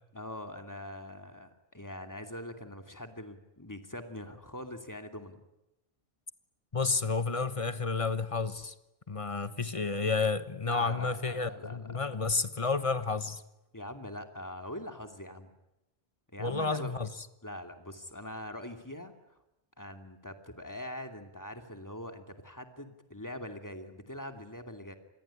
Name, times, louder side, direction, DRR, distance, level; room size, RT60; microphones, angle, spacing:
voice 1, 0.1-5.4 10.7-12.2 13.7-15.5 16.3-16.9 17.4-19.4 19.8-25.0, left 1 dB, 15° left, 2.5 m, -43 dB
voice 2, 6.7-8.7 9.1-13.4 16.4-17.1, left 4 dB, 30° left, 1.3 m, -31 dB
27.5 x 20.5 x 10.0 m
omnidirectional pair, 1.1 m